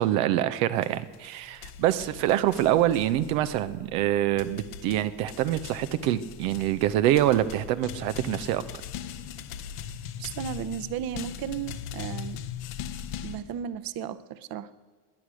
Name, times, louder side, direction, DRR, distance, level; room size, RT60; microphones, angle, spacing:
voice 1, 0.0-8.6, right 13 dB, 85° right, 11 dB, 0.9 m, -25 dB
sound 1, 0.8-13.4, left 9 dB, 80° left, 1.3 m, -40 dB
voice 2, 10.2-12.5 13.2-14.7, right 9 dB, 50° right, 14 dB, 0.9 m, -35 dB
19.0 x 10.0 x 6.3 m, 1.5 s
supercardioid pair, 95°, 46 cm